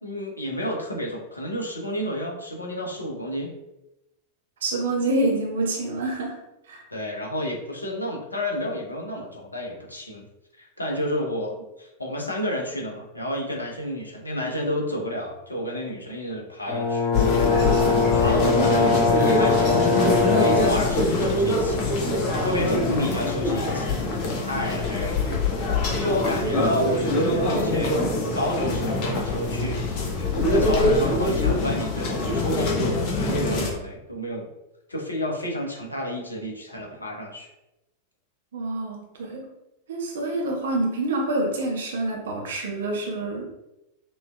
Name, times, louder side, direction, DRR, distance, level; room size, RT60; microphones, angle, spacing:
voice 1, 0.0-3.5 6.9-10.2 10.6-17.1 17.9-22.1 22.4-23.9 24.5-25.2 26.0-28.0 28.3-30.0 30.5-32.8 33.1-34.5 34.9-37.5, equal, 80° left, 0 dB, 1.0 m, -30 dB
voice 2, 4.6-6.4 6.7-6.8 38.5-39.5 39.9-43.4, right 2 dB, 60° right, 0 dB, 0.9 m, -27 dB
Brass instrument, 16.7-20.8, left 4 dB, 5° left, 1.3 m, -22 dB
sound 1, 17.1-33.7, left 2 dB, 45° left, 1.2 m, -24 dB
6.1 x 3.2 x 2.3 m, 0.91 s
figure-of-eight pair, 90°, 0 cm